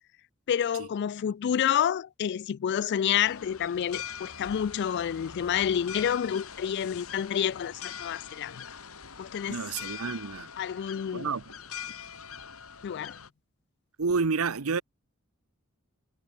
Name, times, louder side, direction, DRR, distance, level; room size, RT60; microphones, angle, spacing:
voice 1, 0.5-8.8 9.2-9.6 10.6-11.3 12.8-13.2, left 9 dB, 50° left, 0.3 m, -29 dB
sound 1, 3.2-13.3, left 7 dB, 85° left, 2.6 m, -43 dB
voice 2, 9.5-10.5 11.1-11.5 14.0-14.8, right 4 dB, 90° right, 0.9 m, -29 dB
head